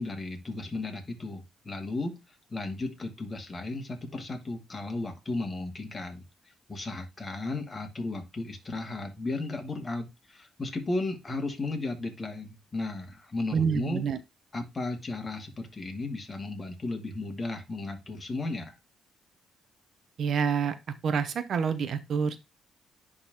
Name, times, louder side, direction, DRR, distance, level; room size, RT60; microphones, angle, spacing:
voice 1, 0.0-6.2 6.7-14.1 14.5-18.7, left 2 dB, 30° left, 4 dB, 2.2 m, -35 dB
voice 2, 13.5-14.2 20.2-20.7 21.0-22.4, right 6 dB, 60° right, 12 dB, 0.8 m, -27 dB
10.5 x 3.9 x 3.0 m, 0.23 s
cardioid pair, 90°, 0 cm